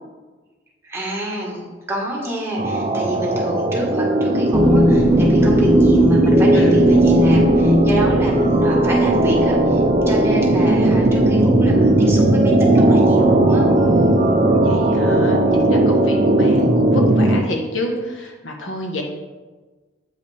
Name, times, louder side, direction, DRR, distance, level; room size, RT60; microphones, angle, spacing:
voice 1, 0.8-13.6, right 1 dB, 15° right, -4 dB, 1.5 m, -27 dB
sound 1, 2.6-17.4, right 1 dB, 40° right, 0.6 m, -17 dB
sound 2, 4.5-15.7, right 1 dB, 5° left, 0.6 m, -19 dB
voice 2, 13.7-19.0, left 1 dB, 70° left, 1 dB, 1.2 m, -29 dB
8.9 x 5.4 x 3.4 m, 1.3 s
head